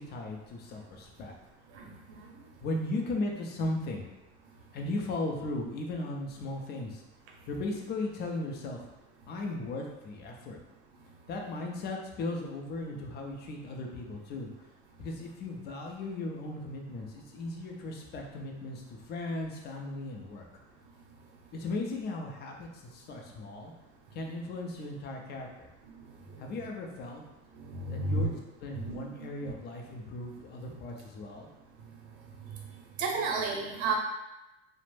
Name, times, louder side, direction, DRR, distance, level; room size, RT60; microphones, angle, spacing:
voice 1, 0.0-1.3 2.6-4.1 4.7-7.0 7.5-8.8 9.3-10.6 11.3-14.5 15.0-20.4 21.5-23.7 24.1-25.7 26.4-27.2 27.9-31.5, left 2 dB, 30° left, 1 dB, 0.4 m, -37 dB
voice 2, 1.8-2.2 27.7-28.3 28.8-29.0 33.0-34.0, right 3 dB, 65° right, 0 dB, 0.7 m, -31 dB
2.4 x 2.1 x 3.2 m, 0.96 s
supercardioid pair, 120°, 34 cm